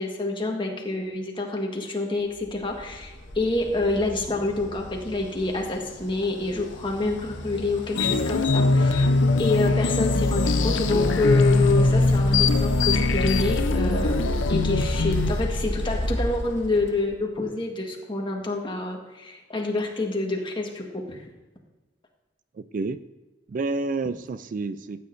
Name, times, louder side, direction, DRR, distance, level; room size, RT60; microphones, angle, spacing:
voice 1, 0.0-21.2, left 2 dB, 25° left, 1 dB, 1.5 m, -27 dB
sound 1, 2.7-17.1, equal, 70° left, 1.5 m, -30 dB
sound 2, 7.9-15.4, left 3 dB, 85° left, 0.6 m, -22 dB
voice 2, 22.5-23.0 23.5-25.0, right 3 dB, 45° right, 12 dB, 0.3 m, -29 dB
14.5 x 8.7 x 2.6 m, 1.2 s
head